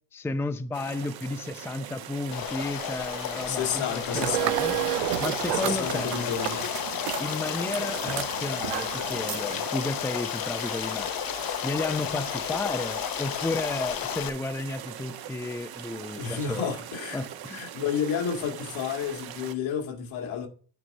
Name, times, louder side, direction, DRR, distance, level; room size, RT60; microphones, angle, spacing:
voice 1, 0.1-4.8 5.2-6.2 7.2-11.1 11.6-16.7 17.1-17.6, left 2 dB, 5° left, 0.5 m, -33 dB
sound 1, 0.7-19.6, right 10 dB, 50° right, 1.1 m, -41 dB
Stream, 2.3-14.3, left 11 dB, 45° left, 0.8 m, -32 dB
voice 2, 3.5-4.8 5.5-6.6 16.2-17.2 17.5-20.5, left 7 dB, 70° left, 2.1 m, -31 dB
sound 2, 4.1-9.7, right 18 dB, 75° right, 0.6 m, -31 dB
9.4 x 4.2 x 5.3 m
supercardioid pair, 85°, 49 cm